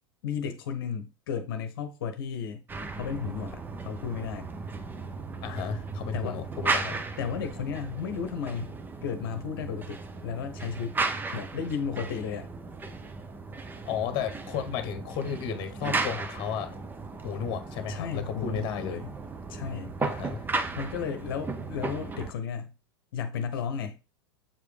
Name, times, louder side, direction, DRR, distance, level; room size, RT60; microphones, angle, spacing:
voice 1, 0.2-2.6 3.0-4.5 6.1-6.4 7.2-8.8 9.0-11.0 11.3-12.5 14.7-14.8 17.9-19.1 19.5-19.9 20.8-22.7 23.1-24.0, left 6 dB, 60° left, 0.9 m, -34 dB
sound 1, 2.7-22.3, right 3 dB, 15° right, 0.8 m, -35 dB
voice 2, 5.4-7.0 13.8-16.8 17.2-19.0 20.0-20.4, left 7 dB, 40° left, 1.2 m, -33 dB
7.5 x 4.9 x 3.3 m
figure-of-eight pair, 90°, 14 cm